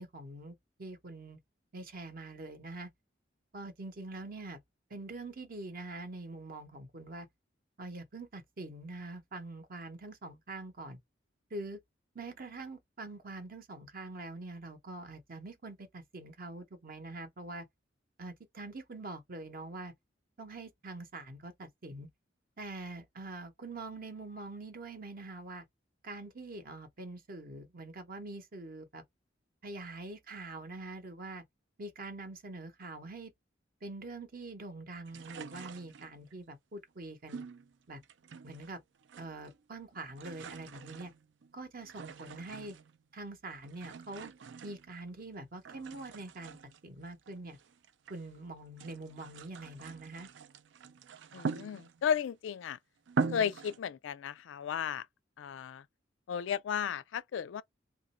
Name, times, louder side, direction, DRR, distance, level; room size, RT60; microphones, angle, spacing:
voice 1, 0.0-1.4 1.7-2.9 3.5-4.6 4.9-7.3 7.8-11.0 11.5-11.8 12.1-17.7 18.2-19.9 20.4-22.1 22.6-25.7 26.0-29.0 29.6-31.4 31.8-33.3 33.8-37.4 37.9-38.0 38.4-38.8 39.2-41.1 41.5-42.7 43.1-44.3 44.6-46.6 46.8-47.6 48.1-50.3, right 2 dB, 50° right, 0.8 m, -44 dB
sound 1, 35.1-36.3 37.3-38.8 39.0-39.6 39.9-43.0 43.6-45.3 45.6-48.3 48.7-52.2 52.7-52.8 53.1-53.8, right 5 dB, 75° right, 0.4 m, -42 dB
voice 2, 51.3-52.8 53.3-55.1 55.4-55.8 56.3-57.6, left 8 dB, 85° left, 0.3 m, -34 dB
2.9 x 2.5 x 4.1 m
head